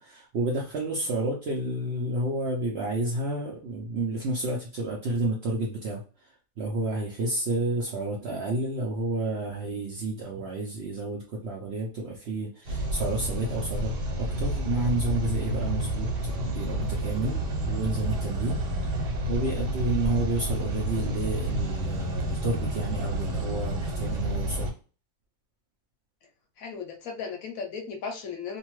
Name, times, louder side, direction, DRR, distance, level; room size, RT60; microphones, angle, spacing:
voice 1, 0.0-6.0 6.6-18.6 19.3-24.7, right 2 dB, 70° right, -2 dB, 0.6 m, -30 dB
sound 1, 12.7-24.7, right 1 dB, 90° right, 1.3 m, -29 dB
voice 2, 26.6-28.6, left 5 dB, 70° left, 3 dB, 0.9 m, -36 dB
2.7 x 2.2 x 3.0 m, 0.37 s
omnidirectional pair, 1.7 m